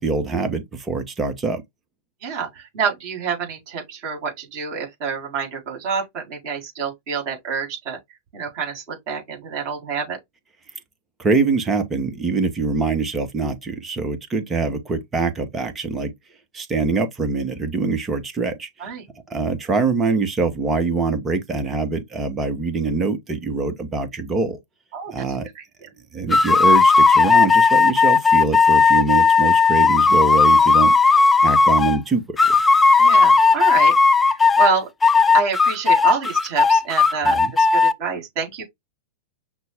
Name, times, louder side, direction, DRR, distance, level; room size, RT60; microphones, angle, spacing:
voice 1, 0.0-1.6 11.2-16.1 16.5-18.9 19.3-24.6 25.1-25.5 26.1-32.6 37.2-37.5, right 3 dB, 20° right, 1.1 m, -24 dB
voice 2, 2.2-8.0 8.3-10.2 18.8-19.0 24.9-25.1 25.6-25.7 33.0-34.9 35.3-37.4 37.7-38.6, right 6 dB, 45° right, 3.6 m, -27 dB
sound 1, 26.3-32.0 32.4-34.7 35.0-37.9, left 4 dB, 15° left, 0.3 m, -15 dB
5.8 x 2.3 x 3.5 m
figure-of-eight pair, 95°, 0 cm